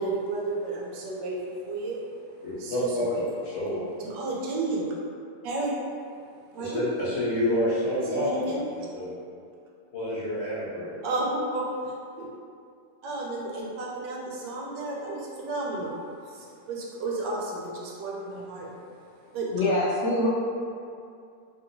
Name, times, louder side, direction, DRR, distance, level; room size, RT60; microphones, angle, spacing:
voice 1, 0.0-2.1 2.6-3.2 4.0-4.9 5.4-5.7 6.5-6.9 8.1-8.6 11.0-12.3 13.0-16.0 16.2-18.7 19.3-19.5, right 2 dB, 85° right, -3 dB, 1.2 m, -32 dB
voice 2, 2.4-3.8 6.6-9.1 9.9-11.0, left 1 dB, 50° left, -10 dB, 1.0 m, -29 dB
voice 3, 19.5-20.3, left 1 dB, 80° left, -8 dB, 0.6 m, -24 dB
3.0 x 2.8 x 2.5 m, 2.4 s
omnidirectional pair, 1.8 m